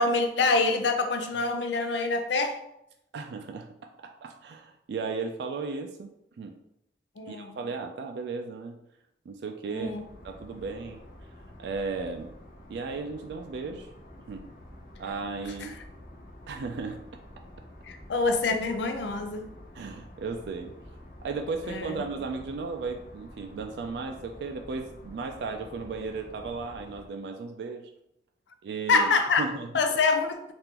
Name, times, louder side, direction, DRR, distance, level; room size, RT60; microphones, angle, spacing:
voice 1, 0.0-2.6 7.2-7.6 9.7-10.0 15.6-15.7 17.9-19.5 21.6-22.0 28.9-29.4 29.7-30.5, left 3 dB, 90° left, 6 dB, 0.4 m, -26 dB
voice 2, 3.1-3.7 4.2-6.1 6.4-6.6 7.3-8.8 9.3-9.9 10.2-11.0 11.6-12.3 12.7-13.9 14.3-14.5 15.0-15.8 16.5-17.0 19.7-20.7 21.2-27.8 28.6-29.1 29.4-29.7, right 4 dB, 75° right, 4 dB, 0.3 m, -35 dB
sound 1, 9.7-27.1, left 1 dB, 50° left, 0.7 m, -49 dB
3.6 x 2.5 x 2.9 m, 0.78 s
head